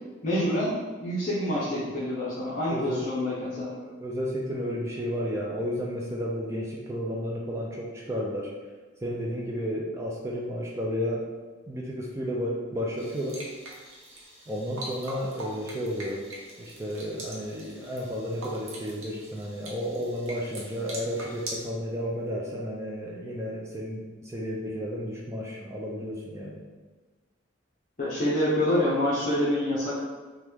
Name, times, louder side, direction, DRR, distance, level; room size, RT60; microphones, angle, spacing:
voice 1, 0.2-3.7 28.0-30.0, left 1 dB, 35° left, -9 dB, 0.6 m, -27 dB
voice 2, 2.7-3.1 3.8-8.5 9.0-11.3 11.7-13.4 14.5-16.2 16.6-26.6, equal, 15° right, -3 dB, 0.3 m, -32 dB
sound 1, 13.0-21.7, right 1 dB, 85° right, 0.7 m, -42 dB
3.0 x 2.2 x 3.4 m, 1.3 s
head